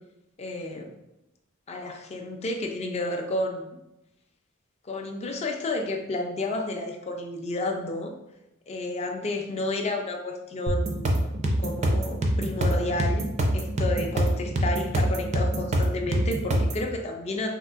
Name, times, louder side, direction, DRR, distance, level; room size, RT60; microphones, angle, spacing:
voice 1, 0.4-0.9 1.7-3.8 4.8-8.1 8.7-11.2 11.6-17.6, left 2 dB, 30° left, 3 dB, 0.4 m, -31 dB
sound 1, 10.7-16.8, right 1 dB, 35° right, 0.4 m, -25 dB
3.5 x 2.4 x 2.4 m, 0.90 s
head